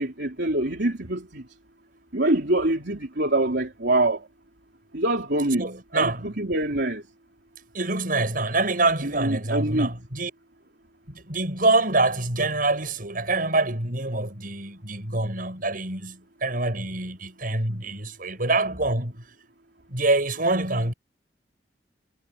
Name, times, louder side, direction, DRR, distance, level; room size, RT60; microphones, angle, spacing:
voice 1, 0.0-1.4 2.1-4.2 4.9-5.6 5.9-7.0 9.1-9.9, right 1 dB, 65° right, 3.7 m, -24 dB
voice 2, 5.6-6.3 7.7-10.3 11.1-19.3 19.9-20.9, right 2 dB, 50° right, 7.9 m, -25 dB
head